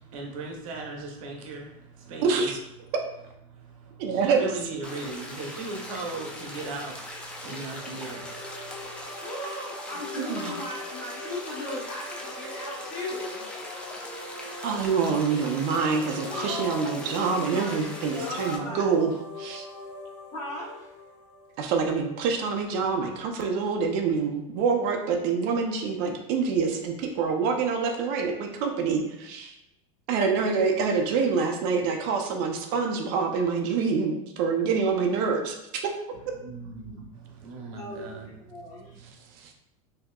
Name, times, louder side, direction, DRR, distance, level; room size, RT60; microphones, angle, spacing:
voice 1, 0.0-2.5 3.5-9.1 36.4-39.1, right 3 dB, 80° right, 0 dB, 0.8 m, -38 dB
voice 2, 2.2-2.6 4.0-4.5 10.2-10.6 14.6-19.1 19.4-19.7 21.6-29.5 30.1-35.9 39.4-39.5, right 5 dB, 55° right, 3 dB, 0.5 m, -26 dB
sound 1, 4.8-18.6, left 1 dB, 5° left, 0.4 m, -40 dB
sound 2, 7.5-22.2, left 1 dB, 65° left, 1.0 m, -42 dB
voice 3, 9.2-13.4 16.3-19.1 20.3-20.9 37.7-39.1, left 1 dB, 40° left, -4 dB, 1.2 m, -37 dB
3.5 x 2.7 x 2.3 m, 0.85 s
supercardioid pair, 125°, 17 cm